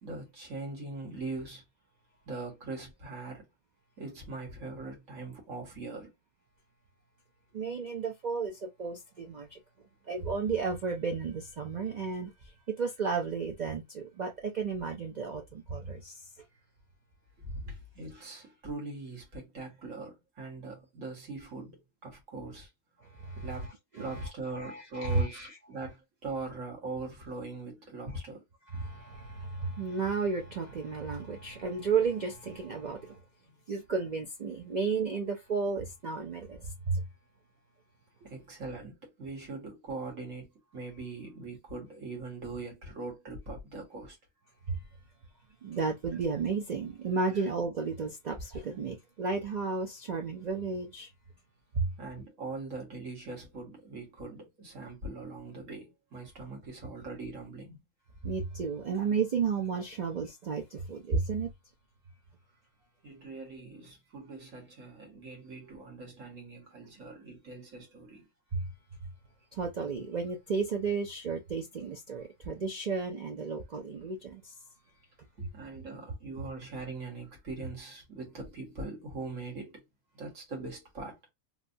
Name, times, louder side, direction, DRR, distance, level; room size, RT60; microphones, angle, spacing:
voice 1, 0.0-1.6 2.3-3.5 4.0-6.1 17.4-22.7 23.4-28.4 33.5-33.6 38.2-44.2 47.3-47.4 52.0-57.8 63.0-68.3 75.4-79.8 80.1-81.2, right 3 dB, 65° right, 1.7 m, -41 dB
voice 2, 7.5-9.6 10.1-16.3 23.0-25.5 28.7-33.2 33.7-37.0 44.7-44.8 45.6-51.1 51.7-51.9 58.2-61.5 68.5-68.6 69.5-74.5 75.4-75.5, right 5 dB, 80° right, 0.4 m, -33 dB
3.3 x 2.3 x 2.6 m
omnidirectional pair, 1.5 m